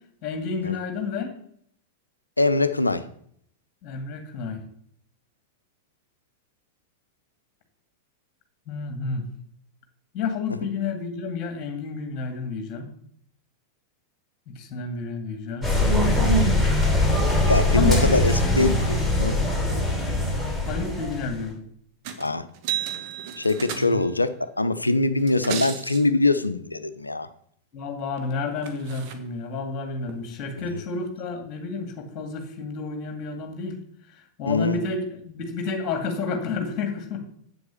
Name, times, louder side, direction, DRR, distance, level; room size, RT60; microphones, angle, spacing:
voice 1, 0.2-1.3 3.8-4.6 8.7-9.3 10.1-12.9 14.5-15.7 17.8-18.7 20.4-21.6 23.7-24.1 27.7-33.8 34.1-37.2, left 4 dB, 35° left, 6 dB, 2.3 m, -30 dB
voice 2, 2.4-3.1 17.4-19.4 22.2-22.4 23.4-27.3 34.5-34.8, left 2 dB, 85° left, 13 dB, 0.6 m, -23 dB
sound 1, 15.6-21.4, left 1 dB, 5° right, 5.2 m, -22 dB
sound 2, 22.0-22.3 22.5-24.2 25.2-26.0 28.2-28.3 28.6-29.1 30.1-30.2, right 9 dB, 45° right, 1.4 m, -33 dB
7.9 x 7.9 x 7.1 m, 0.65 s
figure-of-eight pair, 90°, 0 cm